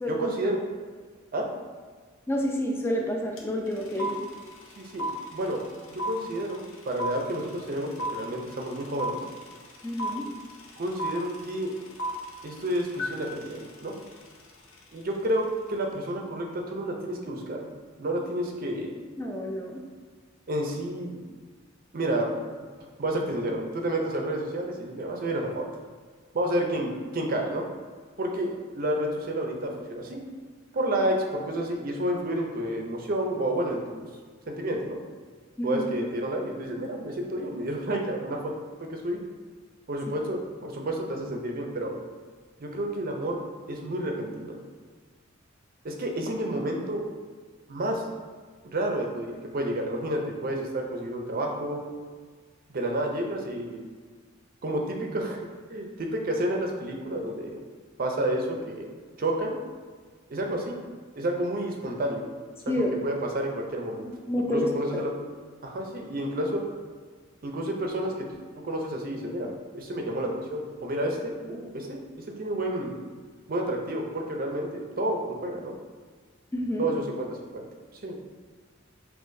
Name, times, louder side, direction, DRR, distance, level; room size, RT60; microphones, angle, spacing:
voice 1, 0.1-0.6 1.3-1.5 4.0-4.1 4.8-5.6 5.9-9.2 10.8-11.7 12.4-13.9 14.9-17.6 18.0-19.0 20.5-21.2 21.9-22.3 23.0-25.7 26.3-27.6 28.2-30.2 30.7-34.0 34.5-35.0 35.6-38.5 38.8-39.2 39.9-41.9 42.6-44.6 45.8-47.0 47.7-48.0 48.6-51.8 52.7-53.9 54.6-55.4 55.7-57.6 58.0-58.9 59.2-59.6 60.3-60.8 61.2-62.3 62.7-62.8 63.0-64.1 64.5-65.1 65.6-66.6 67.4-68.3 68.6-72.0 72.4-72.9 73.5-75.7 76.8-77.7 78.0-78.2, right 1 dB, 45° right, 1 dB, 0.5 m, -30 dB
voice 2, 2.3-4.2 9.8-10.3 19.2-19.8 35.6-35.9 62.7-62.9 64.0-65.0 76.5-76.9, left 1 dB, 10° left, 0 dB, 0.4 m, -29 dB
sound 1, 3.4-3.5 3.7-14.8, right 1 dB, 85° left, 0.6 m, -35 dB
5.5 x 2.9 x 2.6 m, 1.5 s
head